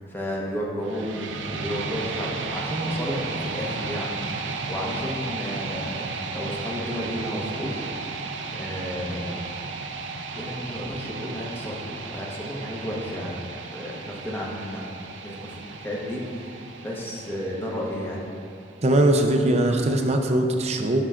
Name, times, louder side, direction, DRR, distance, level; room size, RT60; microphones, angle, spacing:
voice 1, 0.0-8.0 8.5-9.4 10.3-13.4 13.7-18.2, equal, 10° left, -4 dB, 1.1 m, -32 dB
sound 1, 0.8-18.8, right 4 dB, 80° right, 0.5 m, -34 dB
voice 2, 18.8-21.1, right 1 dB, 35° right, 4 dB, 0.6 m, -21 dB
12.0 x 5.5 x 2.5 m, 2.4 s
head